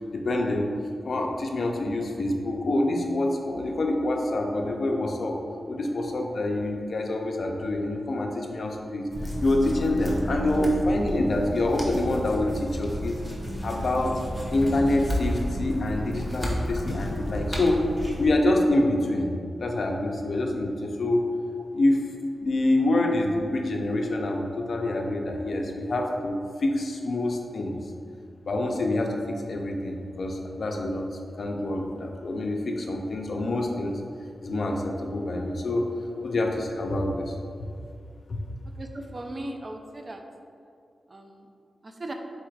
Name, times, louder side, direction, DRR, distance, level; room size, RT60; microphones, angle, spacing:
voice 1, 0.1-0.7 1.0-5.4 5.7-9.1 9.4-13.2 13.6-14.2 14.5-17.8 18.2-19.3 19.6-21.3 21.7-22.0 22.3-27.7 28.5-31.1 31.4-34.0 34.4-35.9 36.2-37.3 38.3-38.4, left 1 dB, 55° left, 2 dB, 0.4 m, -26 dB
sound 1, 9.1-18.3, equal, ahead, 0.7 m, -31 dB
voice 2, 38.8-40.2 41.1-41.3 41.8-42.1, right 1 dB, 30° right, 3 dB, 0.4 m, -37 dB
4.2 x 2.3 x 4.5 m, 2.3 s
wide cardioid pair, 130°, 0 cm